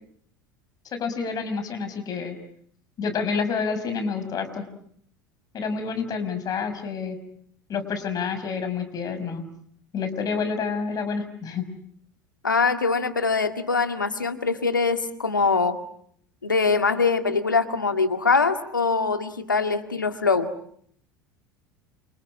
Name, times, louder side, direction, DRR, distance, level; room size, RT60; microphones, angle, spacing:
voice 1, 0.9-2.4 3.0-4.6 5.5-7.2 7.7-9.5 9.9-11.6, left 5 dB, 40° left, 9 dB, 6.0 m, -28 dB
voice 2, 12.4-15.8 16.4-20.5, left 4 dB, 90° left, 8 dB, 2.0 m, -23 dB
29.0 x 27.0 x 7.7 m, 0.66 s
figure-of-eight pair, 75°, 10 cm